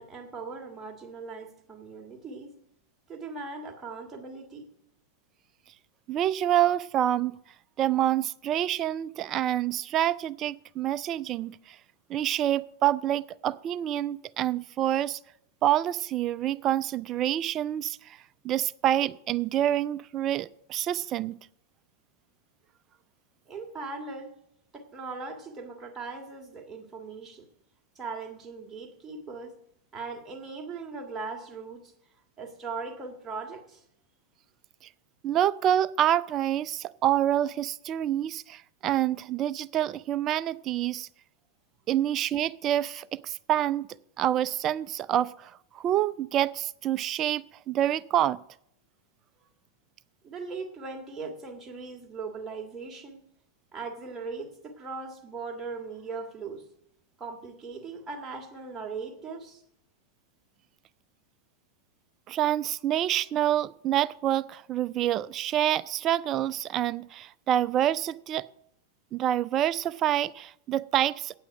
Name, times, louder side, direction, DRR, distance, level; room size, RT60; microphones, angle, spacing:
voice 1, 0.0-2.5 3.1-4.7 23.5-24.3 24.7-27.5 28.0-29.6 29.9-31.9 32.4-33.8 49.4-49.5 50.2-53.2 53.7-56.6 57.2-59.6, right 4 dB, 15° right, 1.7 m, -39 dB
voice 2, 6.1-7.4 7.8-11.6 12.1-15.2 15.6-18.2 18.4-21.4 35.2-41.1 41.9-43.9 44.2-48.4 62.3-68.5 69.1-71.4, right 11 dB, 30° right, 0.3 m, -27 dB
8.6 x 8.5 x 5.9 m
figure-of-eight pair, 90°, 0 cm